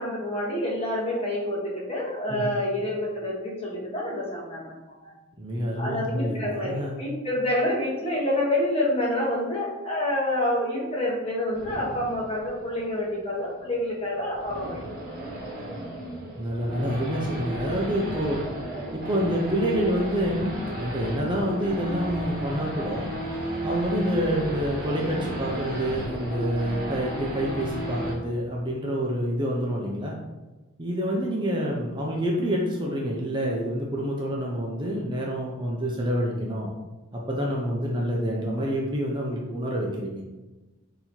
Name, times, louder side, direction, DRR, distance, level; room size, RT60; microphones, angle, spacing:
voice 1, 0.0-5.1 5.8-14.8 24.2-24.4 38.6-38.7, left 1 dB, 30° left, -4 dB, 1.2 m, -28 dB
voice 2, 5.4-7.0 16.4-18.4 18.9-23.1 23.6-30.2 30.8-36.7 37.3-40.2, equal, 25° right, -2 dB, 0.6 m, -27 dB
Race car auto racing / Idling / Accelerating revving vroom, 11.5-28.1, right 1 dB, 45° right, 1.1 m, -34 dB
4.0 x 2.9 x 4.3 m, 1.1 s
head